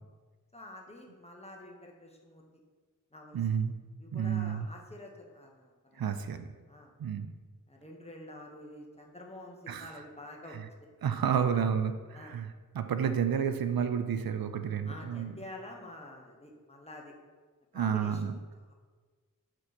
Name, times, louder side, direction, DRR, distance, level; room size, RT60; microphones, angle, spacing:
voice 1, 0.5-2.4 3.1-3.5 4.0-6.2 6.7-6.9 7.7-10.6 11.3-11.7 12.1-12.4 13.0-13.1 14.8-17.1 17.7-18.2 18.7-18.8, left 1 dB, 20° left, 0 dB, 1.2 m, -48 dB
voice 2, 3.3-3.7 4.1-4.7 6.0-6.5 7.0-7.3 9.7-9.9 10.5-10.6 11.0-12.5 12.7-15.3 17.7-18.3, right 7 dB, 90° right, 9 dB, 0.5 m, -30 dB
6.4 x 4.5 x 4.2 m, 1.4 s
wide cardioid pair, 50°, 34 cm